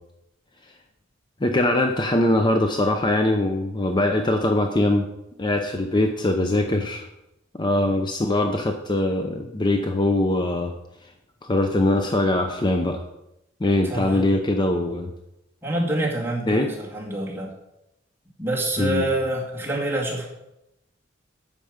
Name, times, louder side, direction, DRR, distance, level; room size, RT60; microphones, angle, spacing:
voice 1, 1.4-5.1 5.4-7.1 7.5-10.7 11.4-13.0 13.6-15.1 16.5-16.7 18.8-19.0, left 1 dB, 25° left, 5 dB, 0.6 m, -22 dB
voice 2, 13.8-14.3 15.6-17.5 18.4-20.3, right 1 dB, 10° right, -4 dB, 2.3 m, -26 dB
10.5 x 6.8 x 5.1 m, 0.89 s
head